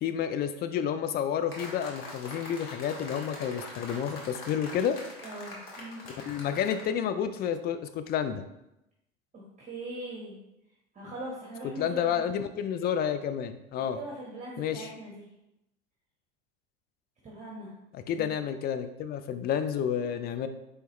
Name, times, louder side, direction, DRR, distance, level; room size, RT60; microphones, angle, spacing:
voice 1, 0.0-5.0 6.3-8.4 11.8-14.0 14.6-14.9 17.9-20.5, left 8 dB, 30° left, 10 dB, 0.4 m, -30 dB
sound 1, 1.5-6.9, left 2 dB, 70° left, 1.3 m, -43 dB
voice 2, 5.2-6.0 9.3-10.4 10.9-12.2 13.9-15.2 17.2-17.7 18.2-18.3, right 2 dB, 25° right, -4 dB, 1.2 m, -41 dB
4.5 x 3.3 x 3.0 m, 0.89 s
hypercardioid pair, 75°, 31 cm